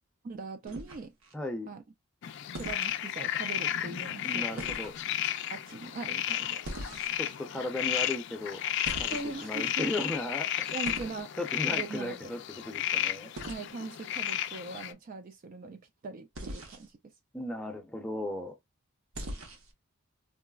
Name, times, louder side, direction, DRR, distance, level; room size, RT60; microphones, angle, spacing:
voice 1, 0.2-1.1 1.7-1.8 2.5-4.7 5.5-6.6 9.1-9.9 10.7-11.3 11.7-12.3 13.5-17.1, right 3 dB, 40° right, 0.3 m, -41 dB
sound 1, 0.7-1.3 2.5-2.9 4.6-5.0 6.6-7.4 8.8-9.6 10.8-11.2 13.4-13.6 16.3-16.9 19.1-19.7, right 1 dB, 70° right, 0.8 m, -41 dB
voice 2, 1.3-1.7 4.2-4.9 7.2-8.6 9.0-10.8 11.4-13.3 17.3-18.6, left 1 dB, 5° left, 0.6 m, -36 dB
sound 2, 2.2-14.9, left 11 dB, 55° left, 0.3 m, -33 dB
3.9 x 2.0 x 2.3 m
head